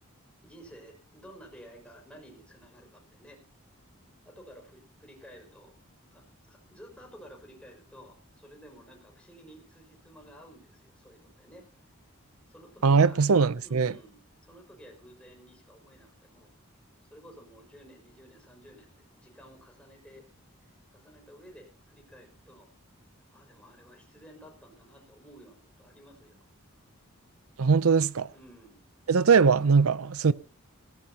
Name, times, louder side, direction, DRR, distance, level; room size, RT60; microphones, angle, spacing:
voice 1, 0.4-3.4 4.2-5.8 6.1-11.6 12.5-13.2 13.6-16.5 17.1-20.3 20.6-22.7 23.3-26.4 28.3-28.8, equal, 5° left, 5.6 m, -52 dB
voice 2, 12.8-13.9 27.6-28.3 29.1-30.3, right 5 dB, 85° right, 0.6 m, -21 dB
17.5 x 17.0 x 2.9 m
head